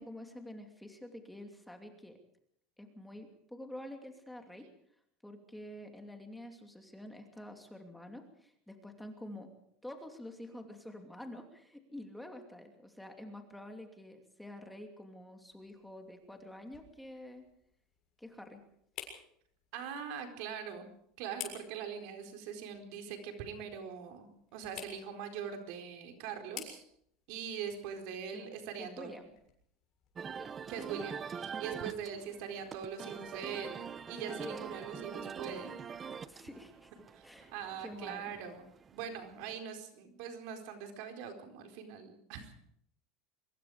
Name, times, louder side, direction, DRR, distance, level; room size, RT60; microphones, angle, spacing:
voice 1, 0.0-2.1 2.8-4.7 5.2-9.5 9.8-17.4 18.2-18.6 28.3-28.4 28.8-29.3 30.3-30.5 34.4-34.7 36.3-36.9 37.2-37.5 37.8-38.3, left 1 dB, 5° left, 4 dB, 2.7 m, -48 dB
sound 1, 15.4-30.2, left 10 dB, 45° left, 7.0 m, -53 dB
voice 2, 19.7-20.9 21.2-26.8 27.3-29.1 30.7-33.8 34.1-35.7 37.1-37.2 37.5-38.7 38.9-42.5, right 7 dB, 65° right, 5 dB, 4.4 m, -42 dB
sound 2, 30.1-39.5, right 6 dB, 25° right, 0.9 m, -44 dB
24.0 x 22.0 x 5.0 m, 0.69 s
supercardioid pair, 145°, 0 cm